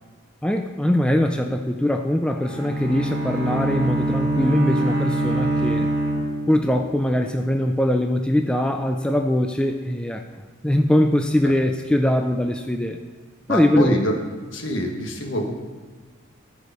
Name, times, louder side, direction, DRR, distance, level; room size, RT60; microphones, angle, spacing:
voice 1, 0.4-5.9 6.5-10.2 10.6-13.0 13.5-14.0, left 1 dB, 5° left, 4 dB, 0.3 m, -21 dB
Bowed string instrument, 2.2-7.0, right 1 dB, 15° right, 2.7 m, -24 dB
voice 2, 13.5-14.1 14.5-15.5, equal, 65° left, 2 dB, 1.4 m, -25 dB
14.0 x 4.9 x 5.3 m, 1.5 s
head